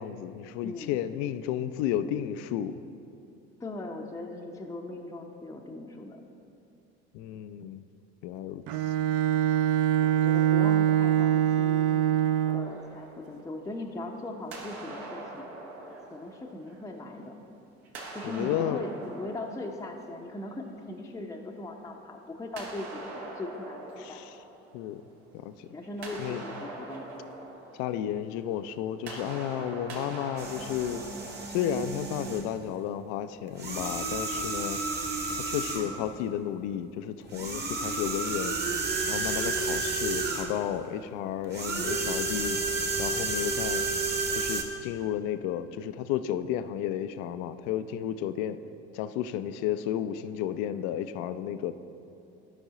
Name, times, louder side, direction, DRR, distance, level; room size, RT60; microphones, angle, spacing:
voice 1, 0.0-2.8 7.1-7.8 8.2-8.9 18.2-18.8 24.0-24.4 24.7-25.0 25.3-25.7 26.2-26.4 27.8-31.0 31.5-34.8 35.3-38.6 39.1-42.6 43.0-43.9 44.3-48.6 48.9-51.7, left 10 dB, 55° left, 12 dB, 0.4 m, -32 dB
voice 2, 0.6-1.1 3.6-6.2 10.0-12.2 12.5-15.5 16.1-17.3 18.1-24.2 25.7-27.1, left 2 dB, 10° left, 1 dB, 0.6 m, -39 dB
Bowed string instrument, 8.7-12.8, right 11 dB, 45° right, 0.4 m, -24 dB
sound 1, 12.4-14.1 14.5-17.3 17.8-20.7 22.6-25.3 25.7-32.3, right 2 dB, 70° right, 1.3 m, -44 dB
sound 2, 30.4-32.5 33.5-36.0 37.3-40.6 41.5-44.6, right 3 dB, 30° right, 1.2 m, -31 dB
12.5 x 5.4 x 3.7 m, 2.6 s
figure-of-eight pair, 60°, 34 cm